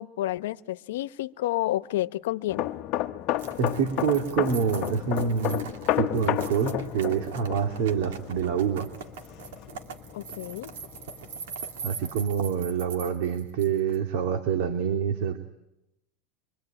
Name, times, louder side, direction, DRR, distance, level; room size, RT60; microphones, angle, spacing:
voice 1, 0.0-2.7 10.1-10.7, left 15 dB, 80° left, 1.0 m, -30 dB
sound 1, 2.5-10.0 10.3-10.5, left 14 dB, 35° left, 1.0 m, -31 dB
Engine, 3.3-12.3, left 3 dB, 5° right, 6.3 m, -51 dB
sound 2, 3.4-14.0, right 6 dB, 90° right, 2.8 m, -41 dB
voice 2, 3.6-5.6 5.9-8.9 11.8-15.4, right 7 dB, 55° right, 2.4 m, -26 dB
25.0 x 24.0 x 9.1 m
supercardioid pair, 170°, 0 cm